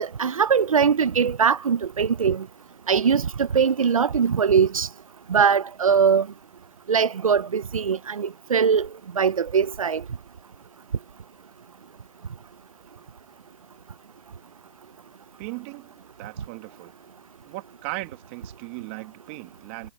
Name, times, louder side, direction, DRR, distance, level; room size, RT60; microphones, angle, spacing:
voice 1, 0.0-2.4 2.9-4.9 5.3-6.3 6.9-8.9 9.2-10.0, right 6 dB, 85° right, 0.7 m, -21 dB
voice 2, 15.4-16.9 17.4-19.9, right 24 dB, 20° right, 2.4 m, -37 dB
hypercardioid pair, 165°, 17 cm